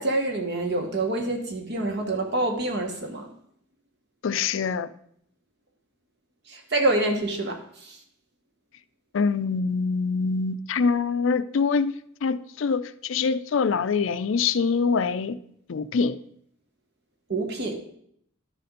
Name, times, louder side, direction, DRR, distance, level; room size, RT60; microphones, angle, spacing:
voice 1, 0.0-3.3 6.5-8.0 17.3-17.8, right 2 dB, 55° right, 1.3 m, -27 dB
voice 2, 4.2-4.9 9.1-11.9 12.2-15.4 15.7-16.2, left 5 dB, 70° left, 0.4 m, -24 dB
12.5 x 4.2 x 5.2 m
head